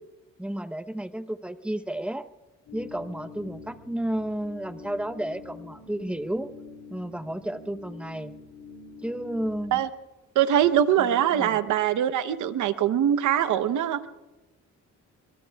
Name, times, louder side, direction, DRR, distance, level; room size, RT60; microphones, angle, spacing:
voice 1, 0.4-2.3 2.7-6.5 6.9-8.3 9.0-9.8 11.0-11.1 11.3-11.6, right 1 dB, 5° right, 10 dB, 0.9 m, -32 dB
sound 1, 2.7-9.7, left 4 dB, 70° left, 6.8 m, -46 dB
voice 2, 10.3-14.1, right 10 dB, 75° right, 12 dB, 1.0 m, -23 dB
25.5 x 23.5 x 2.4 m, 1.1 s
cardioid pair, 90°, 30 cm